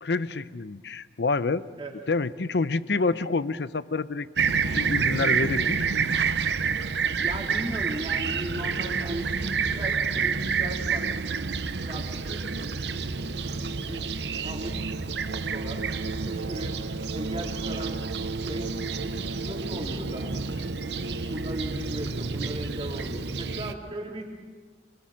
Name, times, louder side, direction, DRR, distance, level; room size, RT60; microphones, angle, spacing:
voice 1, 0.0-1.6 2.1-5.9, left 3 dB, 70° left, 15 dB, 0.7 m, -28 dB
Fixed-wing aircraft airplane, 4.4-23.7, right 5 dB, 70° right, 0.8 m, -29 dB
voice 2, 7.2-11.1 11.9-12.5 13.8-15.9 16.2-16.8 17.1-18.1 18.4-18.7 19.4-20.3 21.3-24.3, right 1 dB, 30° right, -1 dB, 3.4 m, -37 dB
25.0 x 21.0 x 6.4 m, 1.4 s
head